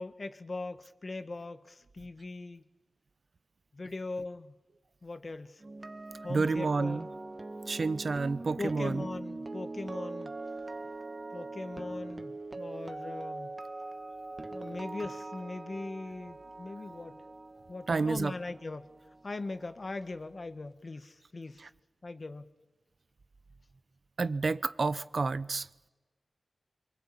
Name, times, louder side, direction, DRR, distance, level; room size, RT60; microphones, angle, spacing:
voice 1, 0.0-2.6 3.7-4.5 5.0-5.6 6.2-7.1 8.6-10.3 11.3-13.5 14.5-17.2 17.7-18.9 19.2-21.6 22.0-22.5, left 3 dB, 50° left, 1.6 m, -40 dB
sound 1, 5.6-19.7 19.9-20.2, right 2 dB, 40° right, 1.3 m, -42 dB
voice 2, 6.3-7.1 7.7-9.0 17.9-18.3 24.2-25.7, right 4 dB, 65° right, 0.8 m, -29 dB
24.0 x 23.5 x 8.6 m
cardioid pair, 55°, 0 cm